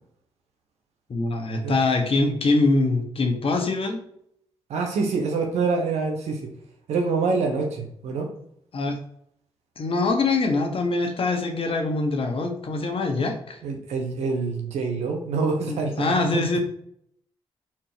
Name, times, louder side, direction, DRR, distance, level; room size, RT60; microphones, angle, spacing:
voice 1, 1.1-4.0 8.7-9.0 9.8-13.6 15.7-16.6, left 3 dB, 55° left, 4 dB, 1.5 m, -24 dB
voice 2, 4.7-6.5 6.9-8.3 13.6-16.6, right 4 dB, 85° right, 2 dB, 1.4 m, -26 dB
4.5 x 4.5 x 5.9 m, 0.71 s
supercardioid pair, 50°, 11 cm